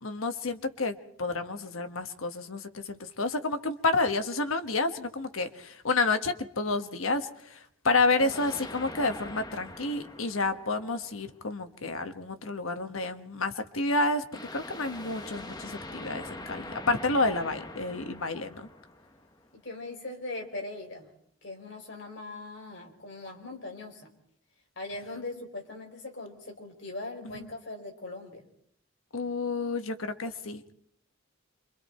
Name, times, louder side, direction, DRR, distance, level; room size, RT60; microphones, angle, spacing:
voice 1, 0.0-7.6 7.8-14.2 14.5-18.7 27.3-27.5 29.1-30.7, left 3 dB, 90° left, 8 dB, 1.5 m, -30 dB
voice 2, 8.1-8.6 19.6-21.1 21.4-24.1 24.8-28.4, left 2 dB, 65° left, 2 dB, 4.2 m, -40 dB
sound 1, 8.3-11.4 14.3-19.5, left 2 dB, 20° left, 1.1 m, -43 dB
27.0 x 24.0 x 4.5 m, 0.67 s
head